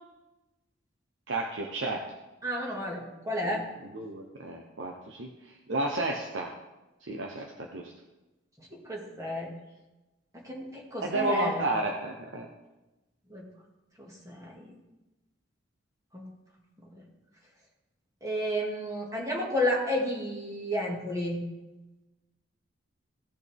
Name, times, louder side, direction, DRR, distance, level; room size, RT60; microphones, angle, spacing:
voice 1, 1.3-2.0 3.4-3.6 3.9-5.3 5.7-6.5 7.1-7.5 7.7-7.9 11.0-12.5, right 2 dB, 75° right, 1 dB, 1.0 m, -31 dB
voice 2, 2.4-3.7 8.6-9.5 10.3-11.6 13.3-13.5 14.0-14.7 16.1-16.3 16.8-17.0 18.2-21.4, left 1 dB, 15° right, -2 dB, 2.0 m, -32 dB
16.0 x 6.2 x 3.6 m, 1.0 s
head